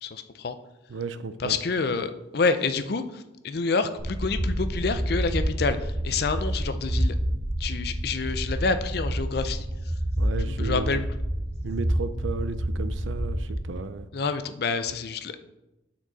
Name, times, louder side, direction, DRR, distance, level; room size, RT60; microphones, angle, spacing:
voice 1, 0.0-0.6 1.4-7.1 7.6-9.7 10.5-11.1 14.1-15.4, left 4 dB, 55° left, 10 dB, 0.5 m, -28 dB
voice 2, 0.9-1.6 10.2-11.0 11.6-14.1, right 3 dB, 80° right, 11 dB, 0.5 m, -34 dB
sound 1, 4.0-13.7, equal, 25° right, 0.8 m, -28 dB
8.8 x 4.4 x 4.0 m, 0.97 s
head